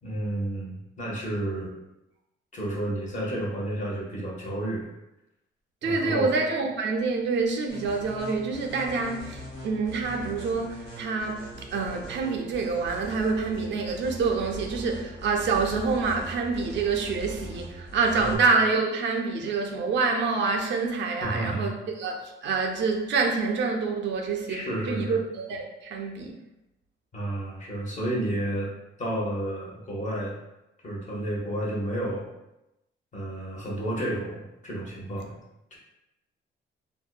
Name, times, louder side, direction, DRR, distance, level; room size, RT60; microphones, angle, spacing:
voice 1, 0.0-1.7 2.5-4.9 5.8-6.3 18.2-18.4 21.2-21.7 24.5-25.2 27.1-28.7 29.0-30.3 30.8-32.2 33.1-35.3 35.7-35.8, right 1 dB, 40° left, -3 dB, 0.8 m, -31 dB
voice 2, 5.8-26.4, right 4 dB, 65° right, 2 dB, 0.4 m, -27 dB
sound 1, 7.7-18.4, equal, 85° left, 0.9 m, -41 dB
2.6 x 2.1 x 2.2 m, 0.92 s
cardioid pair, 90°, 20 cm